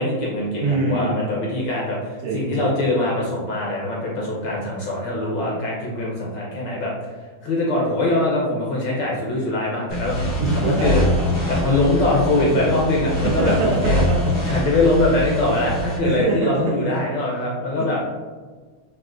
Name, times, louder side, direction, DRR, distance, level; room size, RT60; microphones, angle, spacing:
voice 1, 0.0-6.9 7.4-10.2 10.6-11.0 11.5-14.0 14.5-18.0, left 2 dB, 70° left, -3 dB, 1.2 m, -22 dB
voice 2, 0.6-1.2 2.2-2.8 10.4-11.8 13.2-14.6 16.0-16.7, right 3 dB, 85° right, -5 dB, 2.1 m, -24 dB
sound 1, 9.9-16.0, left 1 dB, 90° left, 0.5 m, -24 dB
6.1 x 2.4 x 2.4 m, 1.4 s
omnidirectional pair, 2.4 m